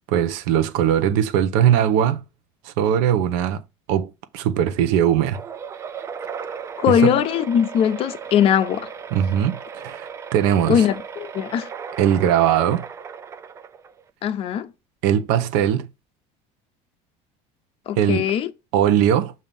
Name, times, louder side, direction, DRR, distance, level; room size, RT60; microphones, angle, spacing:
voice 1, 0.1-2.2 2.6-3.6 3.9-5.4 6.9-7.1 9.1-10.9 12.0-12.9 15.0-15.9 18.0-18.3 18.7-19.3, right 10 dB, 90° right, 0.9 m, -20 dB
sound 1, 5.3-14.1, right 7 dB, 20° right, 0.4 m, -36 dB
voice 2, 6.8-8.9 10.7-11.7 14.2-14.7 17.9-18.5, left 9 dB, 40° left, 0.7 m, -20 dB
7.4 x 2.7 x 5.3 m
cardioid pair, 160°, 15 cm